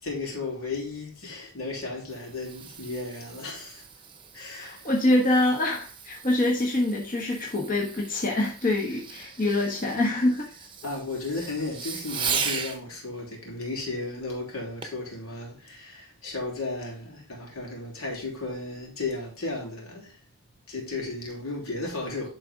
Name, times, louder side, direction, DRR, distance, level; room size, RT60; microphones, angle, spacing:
voice 1, 0.0-3.8 4.3-4.9 9.2-9.4 10.8-20.2 20.7-22.3, left 3 dB, 75° left, 3.4 m, -34 dB
Fireworks, 1.8-12.8 14.8-15.1 15.7-15.8, right 6 dB, 25° right, 0.9 m, -37 dB
voice 2, 4.5-10.5, left 1 dB, 40° left, 1.3 m, -25 dB
11.0 x 4.0 x 3.6 m
head